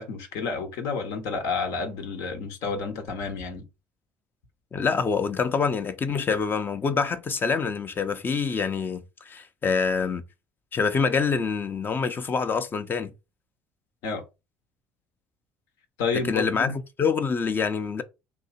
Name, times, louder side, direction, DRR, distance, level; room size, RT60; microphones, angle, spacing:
voice 1, 0.0-3.6 14.0-14.2 16.0-16.8, left 5 dB, 70° left, 1.0 m, -30 dB
voice 2, 4.7-10.2 10.7-13.1 16.3-18.0, left 5 dB, 35° left, 0.6 m, -26 dB
2.8 x 2.7 x 4.1 m
hypercardioid pair, 65°, 6 cm